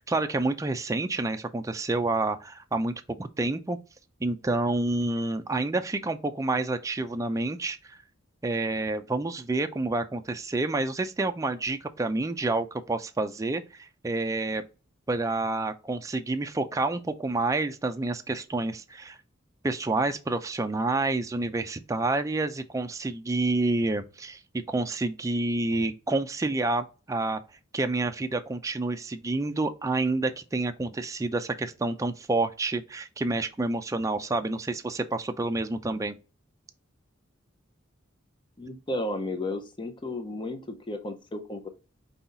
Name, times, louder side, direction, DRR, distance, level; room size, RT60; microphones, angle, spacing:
voice 1, 0.0-3.8 4.2-8.0 8.4-14.6 15.1-19.2 19.6-27.4 27.7-36.2, right 2 dB, 15° right, 0.4 m, -28 dB
voice 2, 38.6-41.7, left 1 dB, 25° left, 0.7 m, -33 dB
5.5 x 2.3 x 3.9 m
head